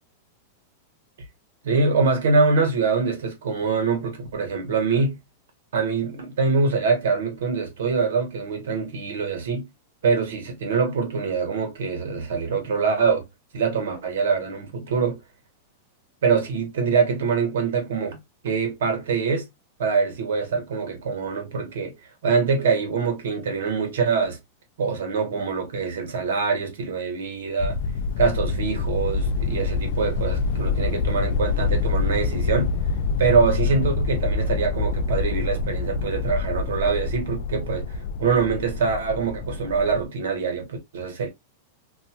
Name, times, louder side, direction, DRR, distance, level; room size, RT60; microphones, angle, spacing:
voice 1, 1.6-5.2 5.7-9.7 10.0-13.2 13.5-15.2 16.2-18.2 18.4-19.5 19.8-21.9 22.2-24.4 24.8-27.8 28.2-32.7 33.2-37.9 38.2-41.3, right 5 dB, 90° right, 1.2 m, -24 dB
sound 1, 27.6-40.0, left 4 dB, 55° left, 0.3 m, -26 dB
2.6 x 2.4 x 2.8 m
supercardioid pair, 170°, 0 cm